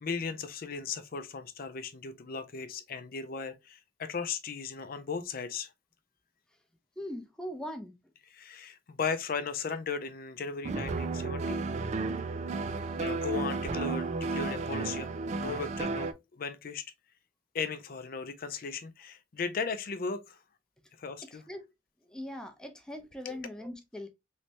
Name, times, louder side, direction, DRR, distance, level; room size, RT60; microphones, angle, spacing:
voice 1, 0.0-5.7 8.3-11.6 13.0-15.1 15.4-16.9 17.5-20.4 21.0-21.4 23.3-23.4, left 5 dB, 55° left, 0.5 m, -36 dB
voice 2, 7.0-8.0 21.3-21.7 22.0-24.1, equal, 5° left, 0.6 m, -41 dB
sound 1, 10.6-16.1, right 3 dB, 40° right, 0.4 m, -33 dB
3.2 x 3.2 x 2.8 m
head